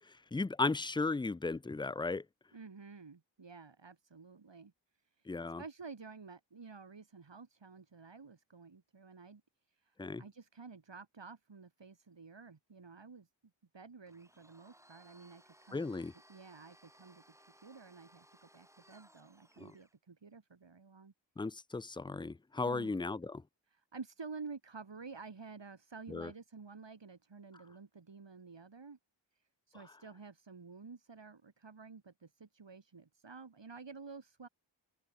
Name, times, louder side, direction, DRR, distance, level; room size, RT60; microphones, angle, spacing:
voice 1, 0.3-2.2 5.3-5.6 10.0-10.2 15.7-16.1 19.6-19.7 21.4-23.4 26.1-26.3, left 3 dB, 10° left, 0.3 m, -35 dB
voice 2, 2.5-4.7 5.0-13.3 13.7-15.9 16.3-21.1 22.6-22.9 23.7-29.0 29.3-34.5, right 4 dB, 65° right, 4.9 m, -51 dB
Domestic sounds home sounds, 14.1-20.0, equal, 5° right, 3.5 m, -64 dB
open air
wide cardioid pair, 75°, 46 cm